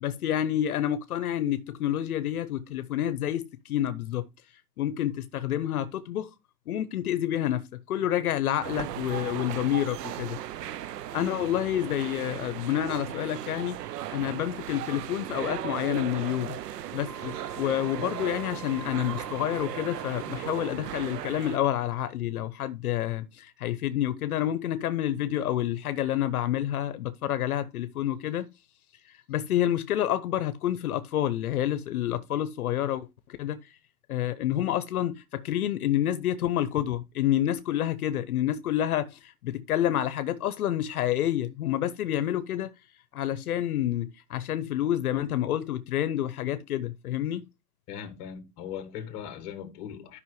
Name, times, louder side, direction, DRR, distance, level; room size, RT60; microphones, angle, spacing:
voice 1, 0.0-4.2 4.8-6.3 6.7-10.4 11.1-13.8 14.1-16.6 16.9-28.5 29.3-33.1 33.4-33.6 34.1-42.7 43.1-47.4, left 12 dB, 65° left, 0.8 m, -28 dB
sound 1, 8.6-21.6, right 12 dB, 85° right, 0.7 m, -37 dB
Wind instrument woodwind instrument, 17.0-21.2, right 1 dB, 25° right, 0.9 m, -46 dB
voice 2, 47.9-50.2, left 8 dB, 25° left, 1.5 m, -39 dB
12.5 x 5.6 x 3.1 m
hypercardioid pair, 165°, 47 cm